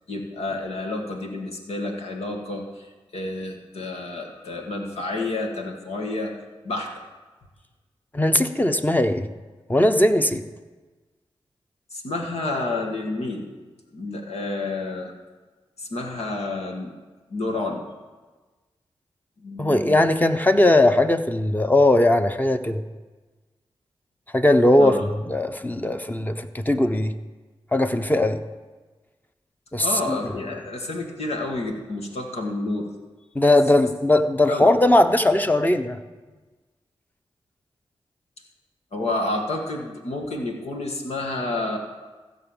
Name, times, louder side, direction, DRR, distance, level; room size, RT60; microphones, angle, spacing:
voice 1, 0.1-6.3 6.6-6.9 11.9-13.5 13.9-15.1 15.8-16.9 17.3-17.8 19.4-20.1 24.8-25.1 29.8-32.9 34.5-34.7 38.9-41.8, left 2 dB, 80° left, 2 dB, 1.9 m, -29 dB
voice 2, 8.1-9.3 9.7-10.4 19.6-22.8 24.3-27.1 27.7-28.4 29.7-30.2 33.3-36.0, left 1 dB, 15° left, 8 dB, 1.0 m, -19 dB
15.0 x 6.1 x 7.3 m, 1.3 s
cardioid pair, 40°, 11 cm